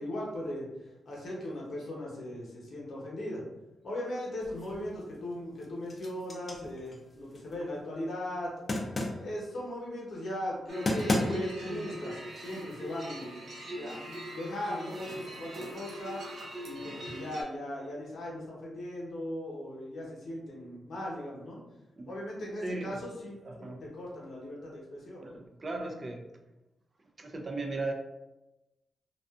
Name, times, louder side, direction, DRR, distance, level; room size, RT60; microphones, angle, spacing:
voice 1, 0.0-3.4 3.8-8.5 9.2-13.4 13.7-16.2 16.6-21.6 22.1-25.4, left 1 dB, 70° left, -4 dB, 0.9 m, -38 dB
sound 1, 4.4-5.0 5.4-7.6 8.7-9.3 10.5-10.6 10.9-11.7, left 1 dB, 40° left, 0.5 m, -33 dB
sound 2, 10.7-17.4, right 1 dB, 70° right, 0.7 m, -42 dB
voice 2, 22.6-23.0 23.4-23.9 25.2-26.2 27.2-27.9, right 2 dB, 40° right, 3 dB, 0.4 m, -37 dB
2.5 x 2.3 x 2.3 m, 1.0 s
cardioid pair, 75°, 0 cm